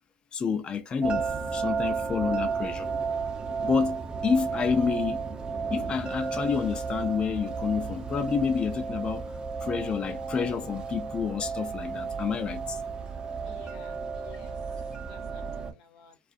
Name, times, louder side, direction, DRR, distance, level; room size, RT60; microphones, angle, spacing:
voice 1, 0.3-2.9 3.6-5.2 5.7-9.3 9.6-12.8, left 6 dB, 30° left, 0.5 m, -29 dB
sound 1, 1.0-15.7, right 5 dB, 30° right, 0.6 m, -33 dB
voice 2, 13.4-16.2, left 7 dB, 75° left, 0.8 m, -54 dB
2.3 x 2.3 x 2.5 m
supercardioid pair, 95°, 3 cm